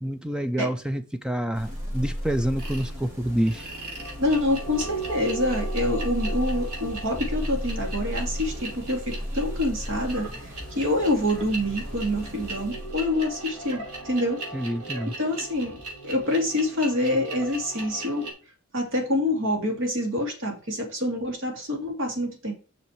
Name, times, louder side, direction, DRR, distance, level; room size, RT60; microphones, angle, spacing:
voice 1, 0.0-3.7 14.5-15.1, right 1 dB, 5° right, 0.4 m, -27 dB
sound 1, 1.5-13.5, equal, 40° right, 4.5 m, -34 dB
sound 2, 2.6-2.9 3.4-18.3, right 2 dB, 85° right, 4.0 m, -38 dB
voice 2, 4.2-14.4 15.2-18.3 18.7-22.5, left 1 dB, 60° right, 2.5 m, -26 dB
6.3 x 5.9 x 4.6 m
head